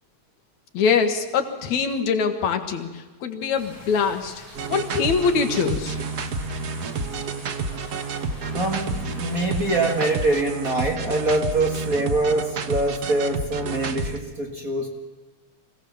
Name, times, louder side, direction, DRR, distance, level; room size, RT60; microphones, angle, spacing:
voice 1, 0.7-6.0, left 5 dB, 75° left, 6 dB, 2.8 m, -23 dB
sound 1, 3.6-10.4, left 1 dB, 5° right, 7.3 m, -45 dB
sound 2, 4.5-14.2, right 4 dB, 85° right, 0.8 m, -30 dB
voice 2, 8.5-14.9, right 2 dB, 35° right, 1 dB, 1.8 m, -24 dB
24.5 x 16.5 x 7.2 m, 1.3 s
omnidirectional pair, 3.3 m